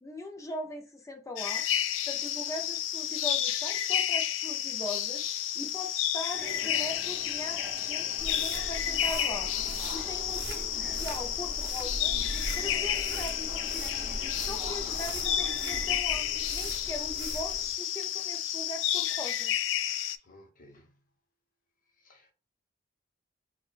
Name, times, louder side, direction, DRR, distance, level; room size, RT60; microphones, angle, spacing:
voice 1, 0.0-1.6 2.1-10.6 11.0-13.8 14.2-19.5, left 1 dB, 15° left, 0.4 m, -40 dB
sound 1, 1.4-20.2, left 10 dB, 85° left, 0.3 m, -31 dB
sound 2, 6.3-16.0, right 2 dB, 5° right, 0.8 m, -46 dB
sound 3, 8.2-17.8, right 1 dB, 65° right, 0.6 m, -40 dB
voice 2, 9.9-10.7 14.6-15.2 20.2-21.1 22.0-22.3, left 1 dB, 50° left, 0.8 m, -54 dB
4.6 x 2.2 x 2.4 m
head